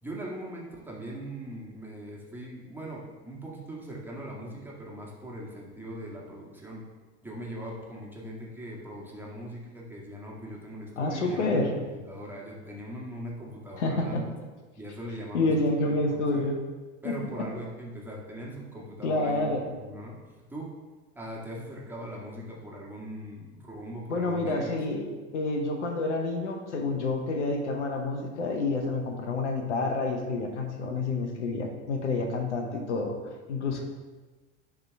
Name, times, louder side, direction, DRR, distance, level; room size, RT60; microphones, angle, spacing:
voice 1, 0.0-6.9 7.2-14.3 14.8-16.5 17.0-20.8 21.2-24.8 33.7-33.8, right 1 dB, 5° right, -4 dB, 1.8 m, -40 dB
voice 2, 11.0-11.7 13.8-14.2 15.3-16.6 17.0-17.1 19.0-19.6 24.1-33.2 33.5-33.8, left 2 dB, 75° left, 3 dB, 0.9 m, -28 dB
10.5 x 3.5 x 3.5 m, 1.3 s
figure-of-eight pair, 75°, 35 cm